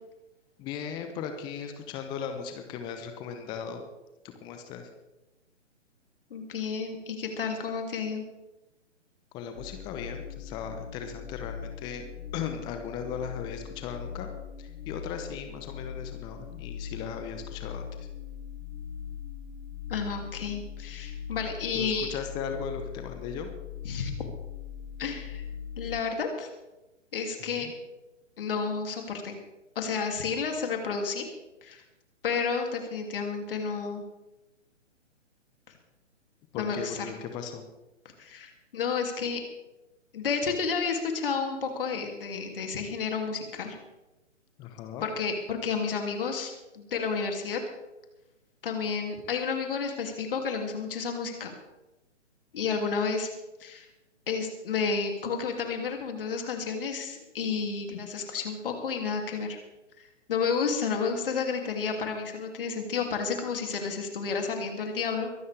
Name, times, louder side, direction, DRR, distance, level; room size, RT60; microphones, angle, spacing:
voice 1, 0.6-3.9 4.4-4.9 9.3-12.1 12.3-14.3 14.6-17.9 21.7-23.5 27.4-27.7 36.5-37.6 44.6-45.1, left 7 dB, 10° left, 6 dB, 0.8 m, -37 dB
voice 2, 6.3-8.2 19.9-22.1 23.8-24.1 25.0-25.4 25.8-26.5 27.1-27.7 28.4-29.3 29.7-31.3 31.6-31.8 32.2-34.0 36.6-37.1 38.2-39.4 40.1-43.8 45.0-47.6 48.6-51.5 52.5-53.3 53.6-53.9 54.3-59.6 60.0-65.3, left 5 dB, 45° left, 4 dB, 2.7 m, -31 dB
sound 1, 9.5-26.0, left 8 dB, 70° left, 3.6 m, -40 dB
23.0 x 12.0 x 3.4 m, 1.0 s
figure-of-eight pair, 130°, 37 cm